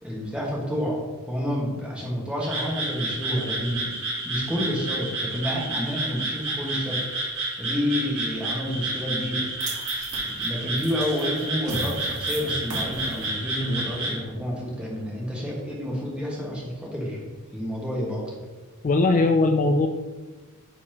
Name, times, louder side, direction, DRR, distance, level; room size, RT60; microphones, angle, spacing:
voice 1, 0.0-9.5 10.2-18.2, equal, 5° right, -4 dB, 1.6 m, -29 dB
Frog, 2.4-14.2, right 2 dB, 60° right, 2.2 m, -30 dB
sound 1, 9.6-15.9, right 2 dB, 90° right, 1.6 m, -39 dB
voice 2, 18.8-19.9, left 3 dB, 35° left, 5 dB, 0.3 m, -19 dB
9.6 x 4.3 x 3.0 m, 1.2 s
head